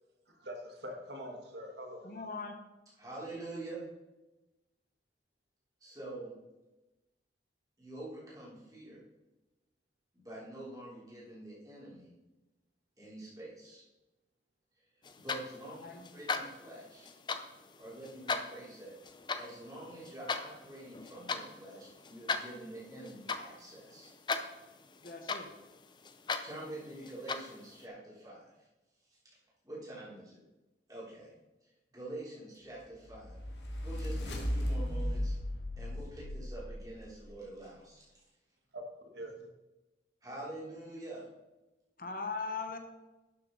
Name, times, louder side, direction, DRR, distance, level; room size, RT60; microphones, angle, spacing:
voice 1, 0.3-2.3 38.7-39.5, equal, 70° right, 1.5 m, -44 dB
voice 2, 2.0-2.6 15.8-16.2 25.0-25.5 42.0-42.8, left 4 dB, 50° left, 1.0 m, -40 dB
voice 3, 3.0-3.8 5.8-6.3 7.8-9.0 10.1-12.1 13.0-13.8 15.1-15.9 16.1-17.1 17.8-18.9 19.4-24.1 26.4-28.5 29.1-29.2 29.6-30.4 30.9-31.3 31.6-33.4 33.8-35.4 35.8-38.1 40.2-41.3, right 1 dB, 20° right, 3.6 m, -46 dB
Wall Clock Ticking, 15.0-27.8, left 4 dB, 25° left, 0.5 m, -40 dB
sound 1, 33.0-37.3, equal, 80° left, 1.7 m, -36 dB
12.0 x 6.8 x 4.0 m
head